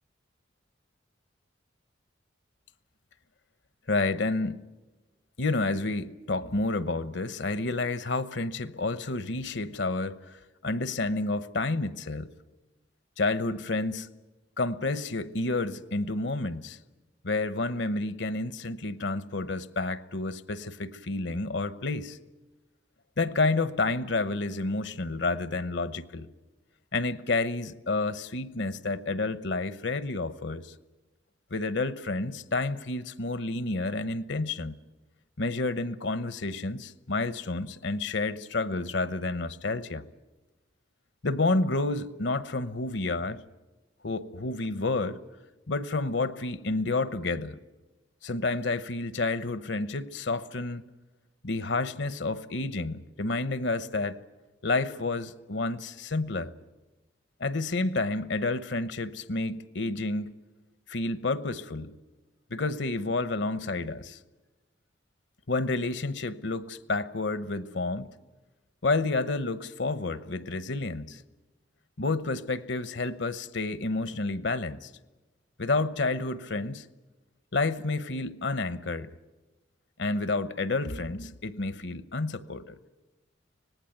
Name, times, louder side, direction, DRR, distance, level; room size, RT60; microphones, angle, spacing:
voice 1, 3.9-4.6 5.4-12.3 13.2-14.1 14.6-16.8 17.2-22.2 23.2-26.3 26.9-30.7 31.5-34.8 35.4-40.0 41.2-43.4 44.0-45.2 45.7-47.6 48.2-50.8 51.4-54.2 54.6-56.5 57.4-60.3 60.9-62.0 62.5-64.2 65.5-68.1 68.8-71.2 72.0-74.9 75.6-76.8 77.5-79.1 80.0-82.8, left 3 dB, 65° left, 0.9 m, -30 dB
25.0 x 19.5 x 9.3 m
head